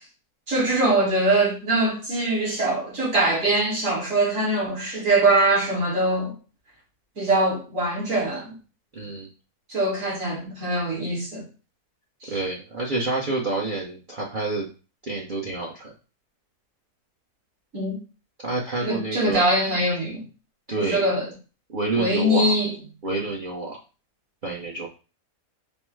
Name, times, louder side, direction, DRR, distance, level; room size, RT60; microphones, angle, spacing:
voice 1, 0.5-6.3 7.2-8.6 9.7-11.4 12.2-12.4 17.7-18.0 18.8-20.3 20.8-21.3 21.9-22.7, right 1 dB, 60° right, 2.3 m, -22 dB
voice 2, 8.9-9.3 12.3-14.7 15.0-15.9 18.4-19.4 20.7-21.1 21.7-22.5 23.0-23.8 24.4-24.9, right 3 dB, 40° right, 0.7 m, -28 dB
5.3 x 2.1 x 4.6 m
omnidirectional pair, 1.6 m